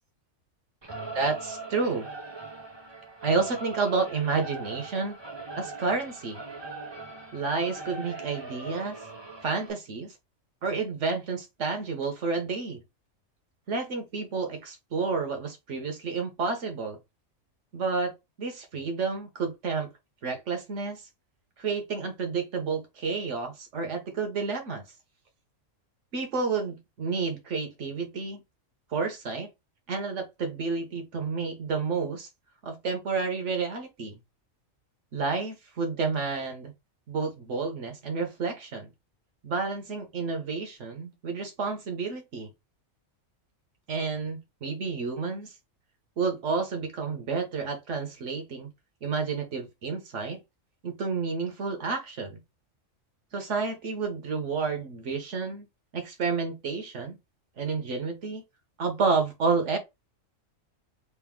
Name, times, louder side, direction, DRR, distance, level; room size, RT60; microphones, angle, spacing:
Singing / Musical instrument, 0.8-9.7, right 3 dB, 25° right, 0.7 m, -40 dB
voice 1, 1.1-2.1 3.2-5.2 5.6-6.4 7.3-9.0 9.4-10.1 10.6-12.8 13.7-17.0 17.7-19.9 20.2-21.0 21.6-24.8 26.1-28.4 28.9-29.5 29.9-32.3 32.6-34.2 35.1-36.7 37.1-38.9 39.4-42.5 43.9-45.5 46.2-48.7 49.0-50.4 50.8-52.4 53.3-55.7 55.9-57.2 57.6-58.4 58.8-59.8, right 4 dB, 65° right, 1.2 m, -30 dB
3.4 x 2.5 x 3.6 m
omnidirectional pair, 1.4 m